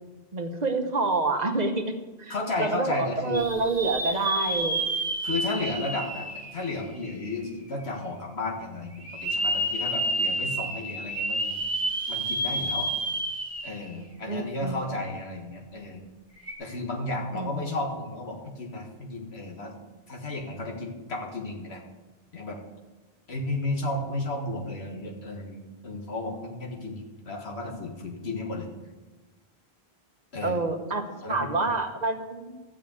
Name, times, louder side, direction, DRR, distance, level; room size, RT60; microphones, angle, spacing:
voice 1, 0.3-1.9 2.2-4.8 14.3-14.8 17.3-17.7 30.4-32.6, right 3 dB, 45° right, 6 dB, 1.1 m, -28 dB
voice 2, 2.3-3.5 5.2-11.6 12.1-12.9 13.6-16.0 16.6-19.7 20.1-21.8 22.3-22.6 23.3-28.7 30.3-30.7 31.2-31.8, left 2 dB, 85° left, 0 dB, 1.9 m, -33 dB
sound 1, 3.3-7.3 7.8-7.9 9.0-13.9 14.3-14.4 16.4-16.5, right 1 dB, 15° left, 1.7 m, -30 dB
14.0 x 5.2 x 8.2 m, 1.2 s
omnidirectional pair, 1.1 m